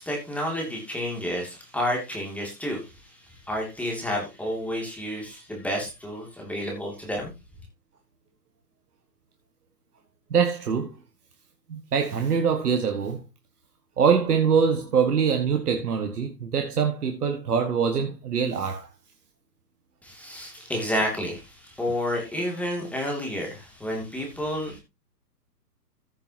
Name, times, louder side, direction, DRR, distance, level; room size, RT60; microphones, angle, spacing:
voice 1, 0.0-7.3 20.0-24.8, equal, 5° left, 2.6 m, -30 dB
voice 2, 10.3-10.9 11.7-13.2 14.0-18.9, right 6 dB, 65° right, 1.8 m, -24 dB
15.0 x 7.2 x 2.9 m
figure-of-eight pair, 130°, 50 cm